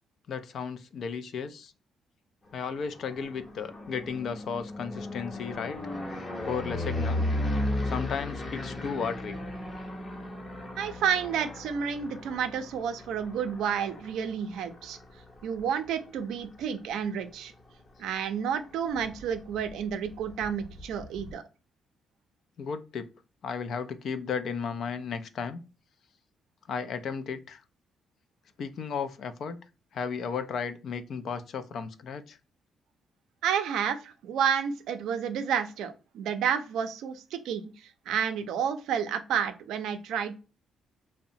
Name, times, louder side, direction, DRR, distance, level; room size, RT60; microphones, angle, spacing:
voice 1, 0.3-1.7 2.5-5.8 6.5-7.2 7.8-9.4 22.6-23.1 23.4-25.6 26.7-27.6 28.6-29.6 29.9-32.4, left 6 dB, 65° left, 11 dB, 0.4 m, -34 dB
sound 1, 2.7-16.7 17.1-17.6 17.9-18.0 18.2-21.3, left 1 dB, 30° left, 0.7 m, -36 dB
voice 2, 10.8-15.0 15.4-17.5 18.0-21.4 33.4-40.4, right 8 dB, 85° right, 9 dB, 0.4 m, -30 dB
2.8 x 2.0 x 2.6 m, 0.33 s
cardioid pair, 90°, 0 cm